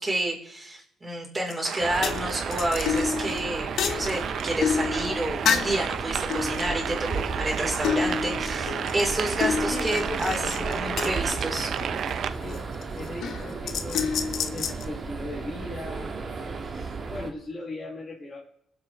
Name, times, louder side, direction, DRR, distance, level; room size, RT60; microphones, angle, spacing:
voice 1, 0.0-11.7, right 1 dB, 20° right, -2 dB, 4.4 m, -29 dB
sound 1, 1.5-1.7 2.0-5.9 6.3-7.6 7.8-11.9 12.5-12.8 13.2-14.8, left 6 dB, 70° left, 1.1 m, -29 dB
sound 2, 1.6-12.3, right 8 dB, 65° right, 0.6 m, -33 dB
sound 3, 1.8-17.3, right 4 dB, 45° right, 1.6 m, -35 dB
voice 2, 9.7-10.0 10.2-11.1 12.3-12.6 12.9-18.4, left 2 dB, 35° left, -5 dB, 3.2 m, -39 dB
21.0 x 8.1 x 3.4 m, 0.68 s
cardioid pair, 90°, 0 cm